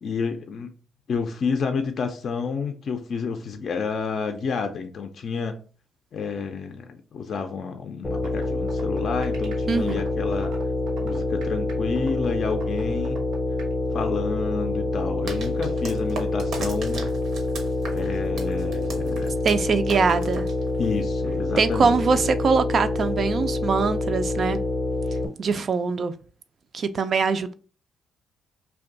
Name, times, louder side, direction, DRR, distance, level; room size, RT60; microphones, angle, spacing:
voice 1, 0.0-0.7 1.1-5.6 6.1-10.5 11.0-13.2 13.9-17.1 17.9-19.4 20.8-22.0, left 5 dB, 55° left, 0.4 m, -30 dB
sound 1, 8.0-25.3, left 2 dB, 15° left, 0.6 m, -26 dB
sound 2, 8.1-13.7, right 3 dB, 90° right, 1.1 m, -42 dB
voice 2, 9.7-10.0 19.4-20.5 21.6-24.6 25.4-26.1 26.7-27.5, right 5 dB, 50° right, 0.3 m, -23 dB
sound 3, 15.3-21.0, right 4 dB, 70° right, 0.7 m, -38 dB
2.5 x 2.3 x 3.8 m
cardioid pair, 90°, 0 cm